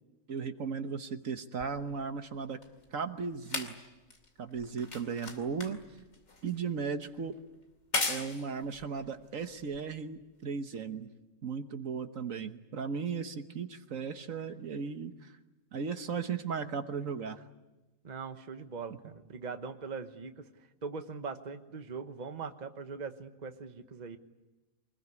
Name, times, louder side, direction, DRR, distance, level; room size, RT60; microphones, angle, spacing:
voice 1, 0.3-2.6 2.9-3.8 4.4-5.8 6.4-7.3 8.1-11.1 11.4-15.3 15.7-17.4, right 6 dB, 70° right, 8 dB, 1.5 m, -36 dB
sound 1, 1.6-10.2 11.1-11.2, left 3 dB, 70° left, 3.1 m, -40 dB
voice 2, 18.0-24.2, right 5 dB, 35° right, 8 dB, 1.2 m, -41 dB
25.0 x 20.5 x 9.7 m, 1.1 s
omnidirectional pair, 1.5 m